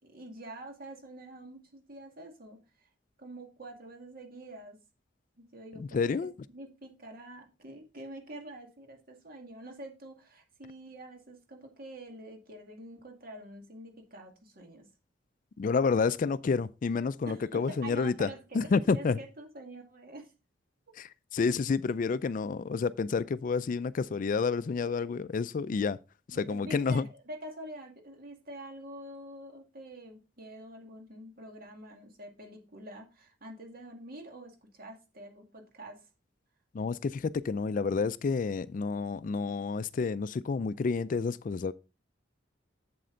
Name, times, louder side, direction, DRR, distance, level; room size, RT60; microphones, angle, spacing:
voice 1, 0.0-2.9 3.2-4.8 5.4-14.9 17.2-20.3 26.3-36.1, right 1 dB, 50° right, 2.1 m, -46 dB
voice 2, 5.8-6.3 15.6-18.3 18.5-19.2 21.0-26.0 26.3-27.1 36.7-41.7, left 4 dB, 45° left, 0.3 m, -29 dB
7.8 x 7.6 x 3.8 m
head